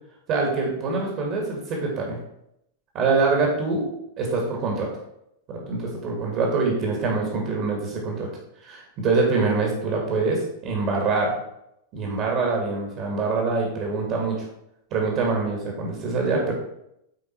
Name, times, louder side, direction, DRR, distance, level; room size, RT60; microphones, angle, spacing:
voice 1, 0.3-2.2 2.9-4.9 5.5-8.3 8.6-11.3 11.9-14.5 14.9-16.5, right 3 dB, 40° right, 0 dB, 2.0 m, -24 dB
8.6 x 4.8 x 4.5 m, 0.79 s
figure-of-eight pair, 90°, 0 cm